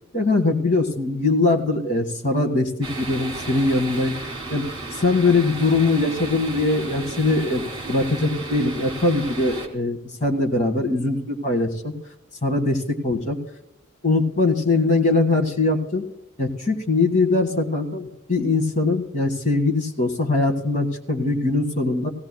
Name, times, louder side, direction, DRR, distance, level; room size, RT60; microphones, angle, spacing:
voice 1, 0.1-4.1 4.5-4.6 4.9-11.9 12.4-13.4 14.0-16.0 16.4-22.1, left 2 dB, 40° left, 2 dB, 1.7 m, -21 dB
sound 1, 2.8-9.7, right 2 dB, 25° right, 2.1 m, -34 dB
17.0 x 17.0 x 2.3 m, 0.83 s
head